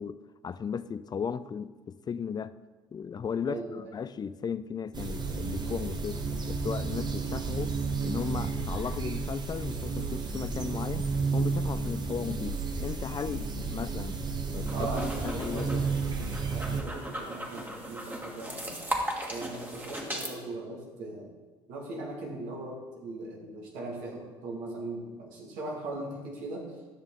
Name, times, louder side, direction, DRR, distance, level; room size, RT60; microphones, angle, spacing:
voice 1, 0.0-2.6 2.9-7.7 8.0-14.2 14.5-15.9, left 7 dB, 30° left, 15 dB, 0.4 m, -36 dB
voice 2, 3.4-3.9 14.7-18.8 19.3-21.3 21.7-26.7, right 2 dB, 75° right, -1 dB, 2.0 m, -39 dB
sound 1, 4.9-16.8, right 4 dB, 35° right, 1.1 m, -32 dB
sound 2, 14.5-20.3, right 1 dB, 15° right, 1.8 m, -37 dB
11.0 x 6.2 x 3.8 m, 1.3 s
hypercardioid pair, 70°, 13 cm